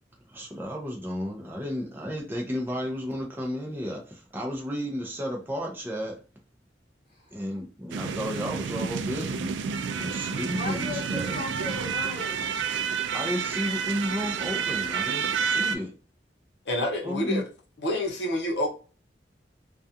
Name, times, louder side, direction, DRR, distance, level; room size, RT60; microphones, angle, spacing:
voice 1, 0.3-6.2 7.3-9.6 9.9-11.4 13.1-16.0 17.0-17.4, equal, 10° right, -1 dB, 0.5 m, -33 dB
voice 2, 7.1-7.4 10.5-12.5 13.1-13.2, left 3 dB, 40° left, -6 dB, 0.9 m, -37 dB
sound 1, 7.9-15.8, right 6 dB, 90° right, 0.3 m, -29 dB
voice 3, 16.7-17.5 17.8-18.7, left 1 dB, 70° left, 0 dB, 0.8 m, -27 dB
2.3 x 2.3 x 2.7 m, 0.35 s
head